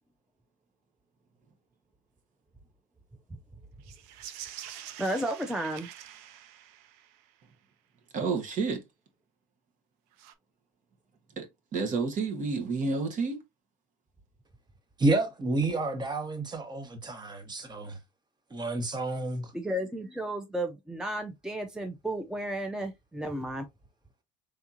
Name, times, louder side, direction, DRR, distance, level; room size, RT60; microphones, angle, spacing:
sound 1, 3.8-7.3 10.1-10.3, right 11 dB, 65° right, 0.6 m, -46 dB
voice 1, 5.0-5.9 19.5-23.7, right 1 dB, 5° right, 0.7 m, -33 dB
voice 2, 8.1-8.8 11.4-13.4, right 4 dB, 45° right, 1.3 m, -30 dB
voice 3, 15.0-18.0 18.5-19.5, right 2 dB, 25° right, 1.3 m, -30 dB
3.6 x 3.5 x 2.7 m
hypercardioid pair, 75°, 18 cm